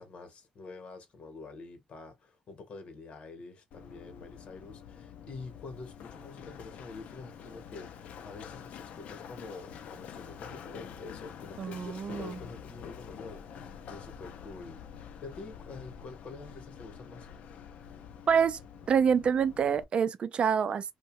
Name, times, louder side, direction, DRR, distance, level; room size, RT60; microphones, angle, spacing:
voice 1, 0.0-17.3, left 3 dB, 60° left, 0.9 m, -47 dB
Run, 3.7-19.8, left 7 dB, 75° left, 0.5 m, -47 dB
voice 2, 11.6-12.4 18.3-18.6 18.9-20.9, right 7 dB, 50° right, 0.4 m, -26 dB
2.7 x 2.1 x 2.9 m
cardioid pair, 105°, 2 cm